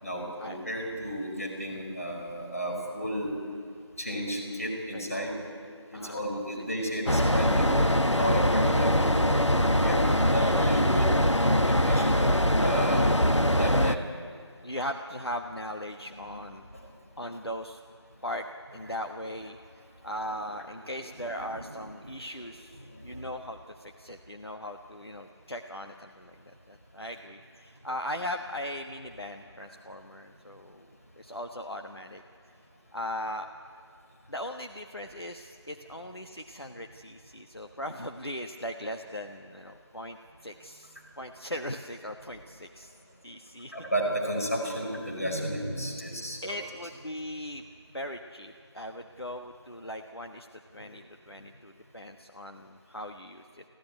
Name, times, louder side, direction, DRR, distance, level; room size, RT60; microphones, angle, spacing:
voice 1, 0.0-3.3 4.0-5.3 5.9-7.7 8.2-9.3 9.8-10.0 10.3-11.1 11.8-12.3 12.6-13.1 13.4-14.1 16.2-16.3 21.3-21.7 23.0-23.1 43.7-46.6 50.8-50.9, equal, 30° left, -1 dB, 4.8 m, -32 dB
sound 1, 7.1-13.9, equal, 85° left, 1.3 m, -23 dB
voice 2, 12.8-13.1 14.6-16.7 17.2-17.8 18.2-18.5 18.7-19.6 20.0-30.9 31.2-32.2 32.9-33.5 34.3-40.2 40.4-42.9 43.2-43.7 46.4-47.6 47.9-50.5 50.7-53.6, left 1 dB, 60° left, 4 dB, 1.2 m, -39 dB
25.0 x 16.0 x 9.5 m, 2.3 s
figure-of-eight pair, 180°, 15 cm